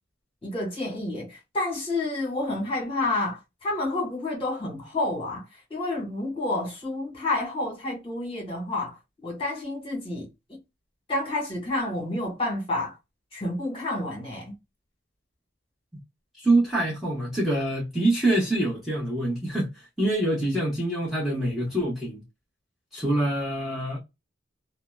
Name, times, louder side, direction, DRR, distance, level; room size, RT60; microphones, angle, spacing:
voice 1, 0.4-9.0 9.2-10.3 11.1-13.0 13.3-14.5, left 2 dB, 30° left, 1.4 m, -29 dB
voice 2, 16.4-22.2 22.9-24.0, right 1 dB, ahead, 1.0 m, -25 dB
2.7 x 2.1 x 2.2 m
head